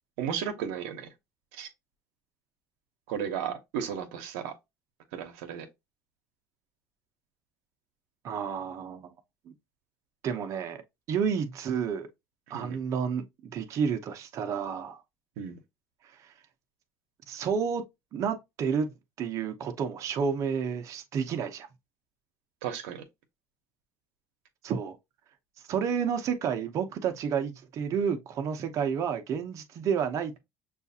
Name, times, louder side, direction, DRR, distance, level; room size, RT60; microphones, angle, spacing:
voice 1, 0.2-1.1 1.5-1.7 3.1-4.5 5.1-5.7 12.5-12.8 15.4-15.6 22.6-23.0, right 8 dB, 85° right, 0.8 m, -34 dB
voice 2, 8.2-9.1 9.5-9.6 10.2-10.8 11.1-12.1 12.5-15.0 16.0-16.3 17.3-17.8 18.1-21.7 24.6-25.0 25.7-30.3, right 7 dB, 50° right, 0.6 m, -30 dB
6.2 x 2.4 x 2.7 m
supercardioid pair, 105°, 7 cm